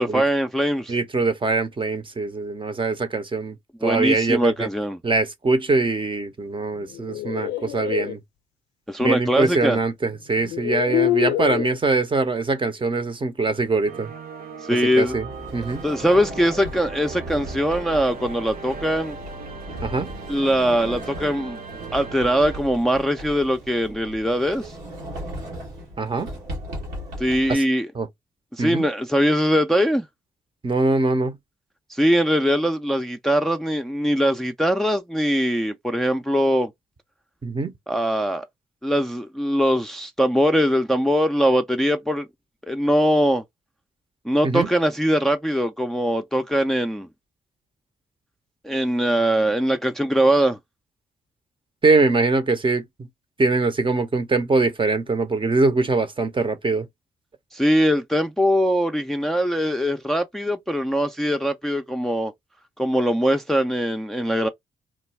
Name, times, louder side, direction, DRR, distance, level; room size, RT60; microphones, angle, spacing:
voice 1, 0.0-0.9 3.8-5.0 8.9-9.8 14.6-15.1 15.8-19.2 20.3-21.6 21.9-24.7 27.2-27.9 28.5-30.0 31.9-36.7 37.9-38.5 38.8-42.3 42.6-43.4 44.3-47.1 48.6-50.6 57.5-62.3 62.8-64.5, equal, ahead, 0.5 m, -21 dB
voice 2, 0.9-3.6 3.8-4.7 5.0-8.2 9.0-14.1 14.8-15.8 19.8-20.1 26.0-26.3 27.5-27.6 27.9-28.1 28.6-28.9 30.6-31.4 37.4-37.7 44.4-44.7 51.8-52.8 53.4-56.9, right 3 dB, 30° right, 0.8 m, -22 dB
sound 1, 6.8-8.1 9.6-9.7 10.4-11.8, left 11 dB, 85° left, 0.4 m, -25 dB
sound 2, 13.9-22.6, right 4 dB, 60° right, 0.9 m, -38 dB
Sliding door, 15.3-27.5, equal, 90° right, 1.5 m, -37 dB
3.0 x 2.2 x 3.4 m
supercardioid pair, 50°, 17 cm